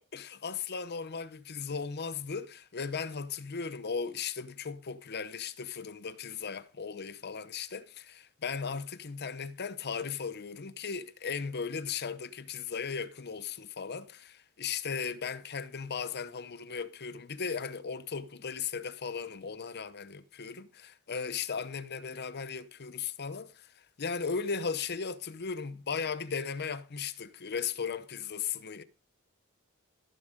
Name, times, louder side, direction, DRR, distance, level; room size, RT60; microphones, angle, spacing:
voice 1, 0.1-28.8, left 6 dB, 50° left, 0.8 m, -37 dB
16.0 x 7.5 x 5.1 m
head